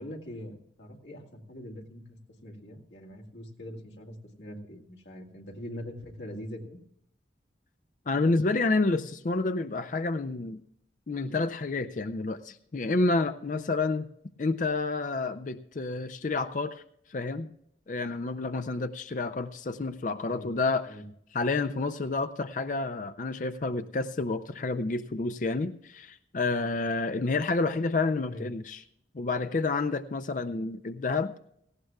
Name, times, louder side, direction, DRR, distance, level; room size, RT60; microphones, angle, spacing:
voice 1, 0.0-6.8 20.3-20.5 20.9-21.0 28.3-28.5, equal, 80° left, 0 dB, 2.3 m, -43 dB
voice 2, 8.1-10.6 11.1-14.1 14.4-16.8 17.1-17.5 17.9-20.9 21.3-28.8 29.1-31.3, left 3 dB, 45° left, 10 dB, 0.5 m, -29 dB
18.0 x 15.0 x 2.3 m, 0.73 s
head